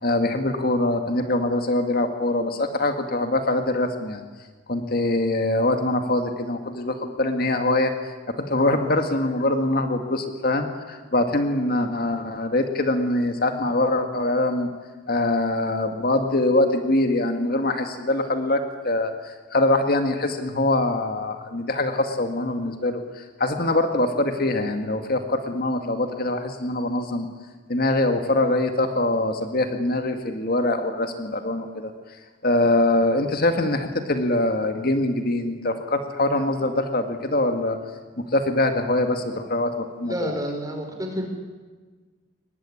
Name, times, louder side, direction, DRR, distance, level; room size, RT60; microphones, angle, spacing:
voice 1, 0.0-4.2 4.7-8.1 8.4-14.7 15.1-27.3 27.7-31.9 32.4-37.8 38.2-40.3, left 2 dB, 50° left, 6 dB, 1.9 m, -23 dB
voice 2, 40.0-41.3, equal, 20° right, 3 dB, 4.3 m, -29 dB
23.0 x 20.0 x 9.8 m, 1.4 s
head